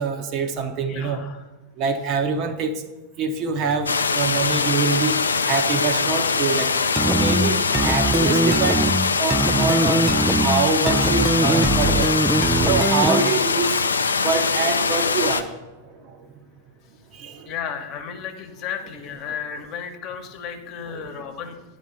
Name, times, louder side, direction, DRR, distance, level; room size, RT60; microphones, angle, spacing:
voice 1, 0.0-1.2 1.8-2.8 3.2-13.8 14.2-16.3 17.1-17.5 19.3-19.4 20.9-21.3, right 4 dB, 40° right, 7 dB, 0.8 m, -26 dB
voice 2, 0.9-1.4 8.5-8.6 17.4-21.6, left 7 dB, 40° left, 5 dB, 1.1 m, -33 dB
sound 1, 3.9-15.4, left 5 dB, 75° left, 0.5 m, -22 dB
sound 2, 7.0-13.4, right 2 dB, 5° right, 0.3 m, -22 dB
10.0 x 4.0 x 6.5 m, 1.1 s
figure-of-eight pair, 90°, 0 cm